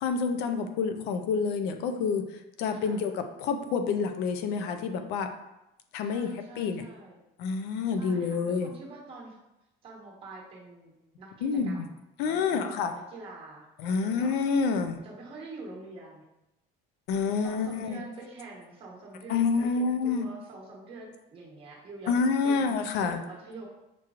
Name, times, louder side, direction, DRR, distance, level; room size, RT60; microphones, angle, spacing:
voice 1, 0.0-5.3 5.9-6.3 6.6-6.8 7.4-8.7 11.4-11.8 12.2-12.9 13.8-15.0 17.1-18.0 19.3-20.3 22.1-23.2, left 5 dB, 60° left, 7 dB, 0.5 m, -28 dB
voice 2, 2.7-3.0 6.1-7.2 7.9-9.4 9.8-12.0 12.3-14.3 15.0-16.2 17.4-22.7 23.0-23.7, right 2 dB, 30° right, -3 dB, 1.2 m, -46 dB
5.9 x 3.0 x 2.4 m, 0.92 s
cardioid pair, 165°, 20 cm